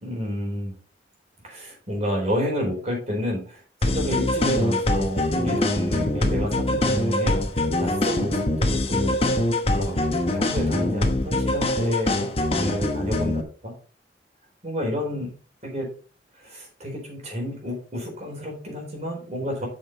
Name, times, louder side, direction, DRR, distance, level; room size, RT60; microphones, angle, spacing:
voice 1, 0.0-0.7 1.4-7.4 7.8-9.3 9.8-10.0 10.3-12.3 12.6-13.7 14.6-15.3 15.6-15.9 16.4-19.7, equal, 40° right, 0 dB, 4.0 m, -30 dB
sound 1, 3.8-13.4, left 1 dB, 35° left, 1.1 m, -23 dB
8.5 x 6.3 x 4.2 m, 0.37 s
head